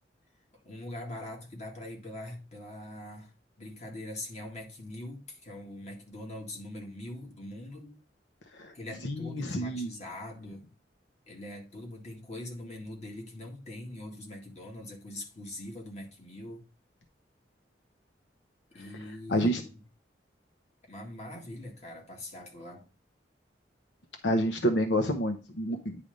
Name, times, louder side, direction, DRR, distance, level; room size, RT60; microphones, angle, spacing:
voice 1, 0.5-8.0 8.7-10.7 11.3-16.7 18.7-19.7 20.9-22.9, left 1 dB, 40° left, 2.0 m, -42 dB
voice 2, 9.0-9.9 19.3-19.6 24.2-26.0, equal, 80° left, 0.9 m, -28 dB
10.0 x 3.4 x 5.2 m
head